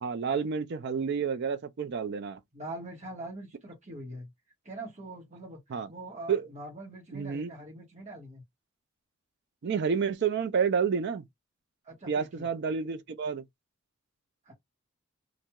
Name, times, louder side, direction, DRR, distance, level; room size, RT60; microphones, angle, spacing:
voice 1, 0.0-2.4 5.7-5.9 6.3-6.5 7.1-7.5 9.6-11.2 12.1-13.4, right 6 dB, 55° right, 0.4 m, -29 dB
voice 2, 2.5-4.3 4.6-5.6 5.9-8.4 11.8-12.5 14.4-14.5, right 1 dB, 35° right, 1.2 m, -43 dB
2.9 x 2.6 x 2.2 m
head